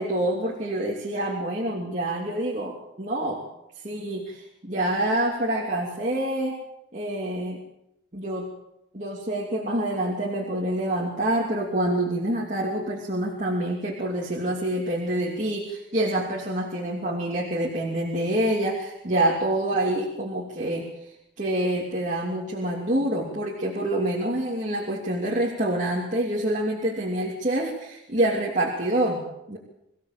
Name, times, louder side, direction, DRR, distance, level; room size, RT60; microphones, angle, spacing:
voice 1, 0.0-3.4 3.7-6.6 6.9-7.6 8.1-8.5 8.9-29.2 29.5-29.6, right 1 dB, 40° right, -3 dB, 2.9 m, -27 dB
24.5 x 15.0 x 7.4 m, 0.84 s
head